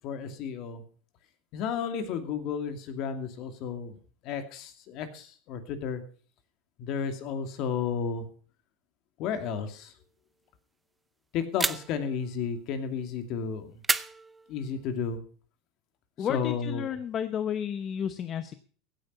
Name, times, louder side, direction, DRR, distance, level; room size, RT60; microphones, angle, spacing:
voice 1, 0.0-0.8 1.5-4.0 4.2-6.0 6.8-8.3 9.2-9.9 11.3-13.8 14.5-15.2 16.2-16.9, left 6 dB, 50° left, 8 dB, 2.5 m, -32 dB
sound 1, 11.6-12.2 13.8-14.8, right 3 dB, 10° right, 0.6 m, -31 dB
voice 2, 16.2-18.5, left 9 dB, 30° left, 11 dB, 0.8 m, -32 dB
16.0 x 9.3 x 5.5 m, 0.42 s
supercardioid pair, 145°, 0 cm